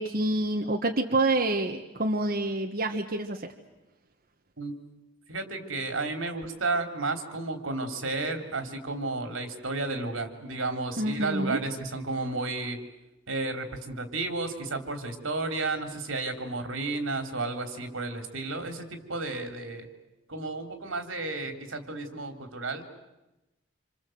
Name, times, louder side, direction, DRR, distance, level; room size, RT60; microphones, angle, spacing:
voice 1, 0.0-3.5 11.0-11.6, right 2 dB, 50° right, 3 dB, 1.4 m, -27 dB
voice 2, 5.3-12.8 13.3-19.9 20.3-22.8, right 3 dB, 80° right, 7 dB, 3.3 m, -32 dB
27.5 x 27.0 x 7.8 m, 0.99 s
head